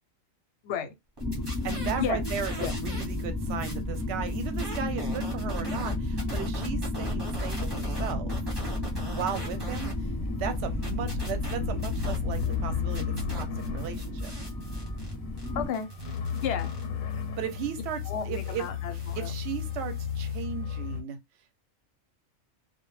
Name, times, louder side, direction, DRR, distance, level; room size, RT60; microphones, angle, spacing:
sound 1, 1.2-15.6, left 2 dB, 20° left, 0.6 m, -32 dB
sound 2, 1.2-3.2 3.5-9.9 10.3-12.6 12.9-20.4, right 1 dB, 20° right, 0.8 m, -43 dB
voice 1, 1.6-8.3 9.1-9.9 10.4-14.3 17.4-18.7 19.2-21.2, right 8 dB, 65° right, 0.8 m, -36 dB
sound 3, 8.8-21.0, left 7 dB, 85° left, 1.0 m, -35 dB
voice 2, 15.5-15.9 16.4-16.7 18.0-19.3, left 8 dB, 65° left, 0.8 m, -32 dB
2.2 x 2.1 x 3.0 m
omnidirectional pair, 1.4 m